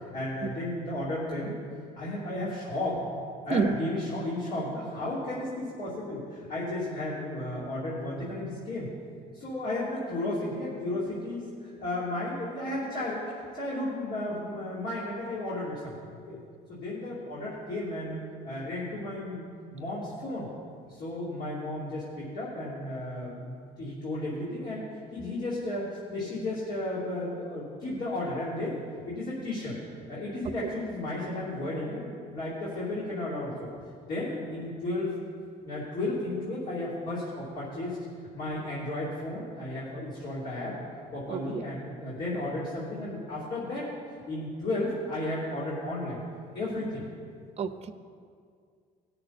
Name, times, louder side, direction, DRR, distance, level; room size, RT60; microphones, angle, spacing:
voice 1, 0.1-1.5 2.0-3.0 3.4-8.9 9.3-11.4 11.8-13.2 13.5-15.9 16.3-16.4 16.7-20.5 20.9-29.8 30.1-33.7 34.1-35.1 35.6-38.0 38.3-40.8 41.1-43.9 44.3-46.2 46.5-47.0, left 1 dB, 55° left, -8 dB, 3.0 m, -33 dB
voice 2, 41.3-41.7 47.6-47.9, right 5 dB, 40° right, 10 dB, 0.7 m, -29 dB
17.5 x 6.7 x 4.3 m, 2.2 s
cardioid pair, 110°, 17 cm